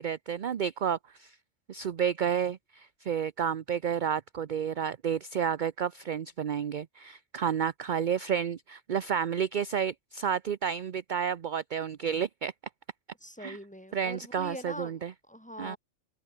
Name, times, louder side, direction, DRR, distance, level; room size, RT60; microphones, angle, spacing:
voice 1, 0.0-1.4 1.7-12.5 13.4-13.6 13.9-15.1 15.6-15.8, right 8 dB, 50° right, 0.7 m, -31 dB
voice 2, 13.2-15.0 15.3-15.8, equal, 5° left, 2.4 m, -42 dB
omnidirectional pair, 1.3 m